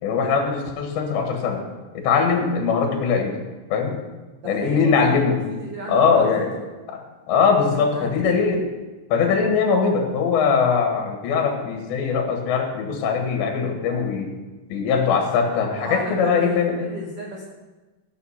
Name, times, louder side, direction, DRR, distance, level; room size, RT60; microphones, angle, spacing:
voice 1, 0.0-1.6 2.0-3.4 3.7-4.0 4.4-5.4 5.9-6.5 6.9-8.7 9.1-14.3 14.7-16.9, left 5 dB, 85° left, 3 dB, 3.7 m, -21 dB
voice 2, 4.4-5.2 5.5-6.6 7.7-8.3 15.7-17.4, right 2 dB, 85° right, -2 dB, 1.2 m, -34 dB
15.5 x 6.7 x 5.6 m, 1.2 s
omnidirectional pair, 5.0 m